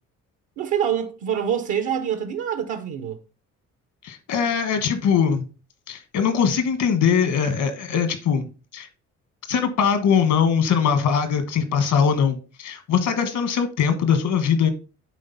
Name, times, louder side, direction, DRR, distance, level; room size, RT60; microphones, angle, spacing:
voice 1, 0.6-3.2, right 8 dB, 75° right, 0.8 m, -25 dB
voice 2, 4.0-5.4 5.9-8.5 8.7-8.9 9.5-14.7, left 7 dB, 80° left, 1.4 m, -21 dB
10.0 x 4.0 x 4.0 m
cardioid pair, 90°, 30 cm